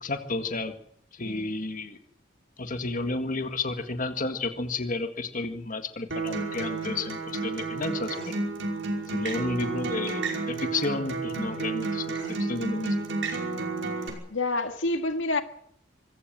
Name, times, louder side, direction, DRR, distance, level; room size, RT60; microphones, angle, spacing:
voice 1, 0.0-0.7 1.1-2.0 2.6-8.4 9.1-13.0, left 3 dB, 45° left, 1.8 m, -32 dB
Acoustic guitar, 6.1-14.1, right 3 dB, 70° right, 5.3 m, -31 dB
voice 2, 14.3-15.4, left 2 dB, 80° left, 1.8 m, -28 dB
25.0 x 15.5 x 7.5 m
head